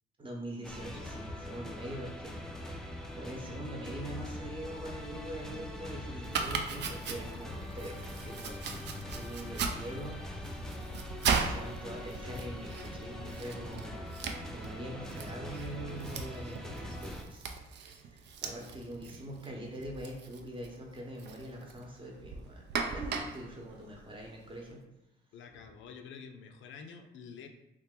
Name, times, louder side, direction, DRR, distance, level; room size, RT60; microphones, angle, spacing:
voice 1, 0.2-2.8 3.1-8.9 9.1-10.7 11.3-13.9 14.5-22.6 22.9-24.8 25.5-25.6, right 1 dB, 25° right, 0 dB, 0.8 m, -43 dB
sound 1, 0.6-17.2, left 1 dB, 5° left, 0.4 m, -43 dB
sound 2, 5.1-16.1, right 2 dB, 85° right, 0.8 m, -54 dB
Domestic sounds home sounds, 6.2-24.7, right 5 dB, 60° right, 0.4 m, -39 dB
voice 2, 8.7-9.0 25.3-27.5, left 6 dB, 75° left, 5 dB, 0.5 m, -48 dB
2.8 x 2.4 x 3.6 m, 0.95 s
cardioid pair, 90°, 20 cm